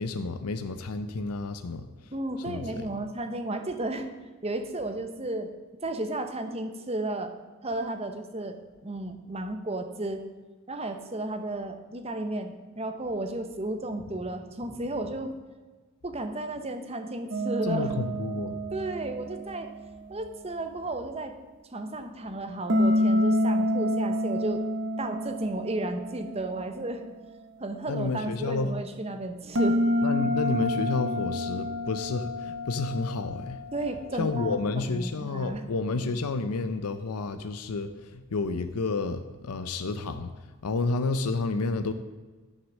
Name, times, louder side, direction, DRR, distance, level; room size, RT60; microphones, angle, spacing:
voice 1, 0.0-1.9 2.5-2.9 17.6-18.6 27.9-28.7 30.0-33.6 34.2-40.3 40.6-41.9, left 3 dB, 90° left, 10 dB, 0.6 m, -30 dB
voice 2, 2.1-4.1 4.4-5.5 5.8-7.3 7.6-10.2 10.7-15.3 16.0-17.9 18.7-19.7 20.1-21.4 21.7-24.6 25.0-27.0 27.6-29.8 33.7-34.6 34.9-35.6, right 2 dB, 25° right, 7 dB, 0.9 m, -33 dB
sound 1, 17.3-20.4 22.7-27.2 29.6-34.1, left 1 dB, 55° right, 1.2 m, -28 dB
10.0 x 6.4 x 6.3 m, 1.3 s
head